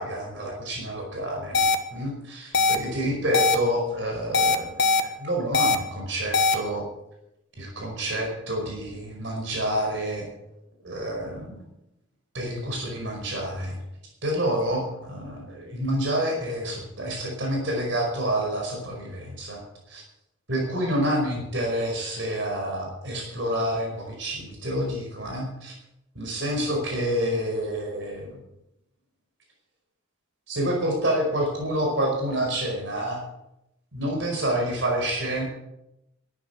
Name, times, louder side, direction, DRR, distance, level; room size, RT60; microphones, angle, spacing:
voice 1, 0.0-1.6 1.9-6.8 7.6-10.2 10.8-11.6 12.3-13.8 14.2-20.0 20.5-25.7 26.1-28.4 30.5-33.2 33.9-35.4, right 1 dB, 65° right, 0 dB, 5.1 m, -28 dB
sound 1, 1.5-1.7 2.5-2.8 3.3-3.5 4.3-5.0 5.5-5.8 6.3-6.5, left 4 dB, 55° left, 1.2 m, -20 dB
13.0 x 10.0 x 8.2 m, 0.87 s
head